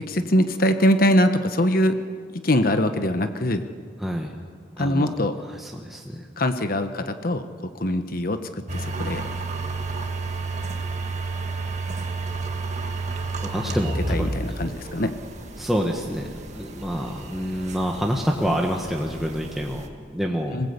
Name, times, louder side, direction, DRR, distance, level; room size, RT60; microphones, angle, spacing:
voice 1, 0.0-2.0 2.4-3.6 4.8-5.3 6.4-8.4 8.7-9.2 13.6-13.8 14.1-15.1 20.5-20.7, left 1 dB, 50° left, 8 dB, 1.2 m, -22 dB
voice 2, 4.0-4.3 4.8-5.1 5.5-6.3 13.4-14.3 15.6-16.3 16.5-20.6, equal, ahead, 0 dB, 1.5 m, -27 dB
sound 1, 8.7-19.9, right 3 dB, 40° right, 1.9 m, -31 dB
27.0 x 19.0 x 8.2 m, 2.1 s
head